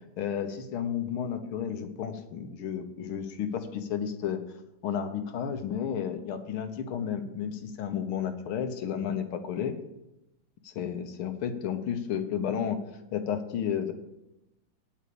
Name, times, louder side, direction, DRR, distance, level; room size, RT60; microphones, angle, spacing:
voice 1, 0.2-4.4 4.8-9.8 10.6-12.8 13.1-13.9, left 8 dB, 90° left, 7 dB, 1.9 m, -32 dB
8.7 x 8.1 x 6.9 m, 0.91 s
omnidirectional pair, 2.3 m